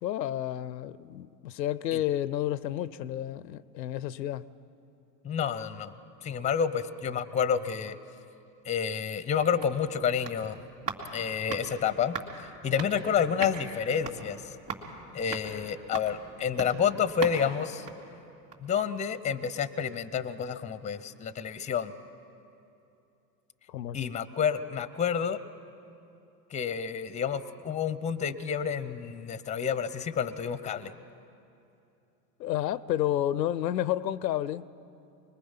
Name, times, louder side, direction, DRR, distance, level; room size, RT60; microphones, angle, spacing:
voice 1, 0.0-4.5 23.7-24.1 32.4-34.7, left 12 dB, 85° left, 18 dB, 0.6 m, -31 dB
voice 2, 5.2-5.9 6.2-8.0 8.7-10.6 11.1-12.2 12.6-14.4 15.1-17.9 18.6-21.9 23.9-25.4 26.5-30.9, left 7 dB, 15° left, 15 dB, 0.7 m, -29 dB
sound 1, 9.5-18.8 19.1-19.2, right 5 dB, 30° right, 3.2 m, -41 dB
24.5 x 21.0 x 5.6 m, 2.8 s
hypercardioid pair, 100°, 50 cm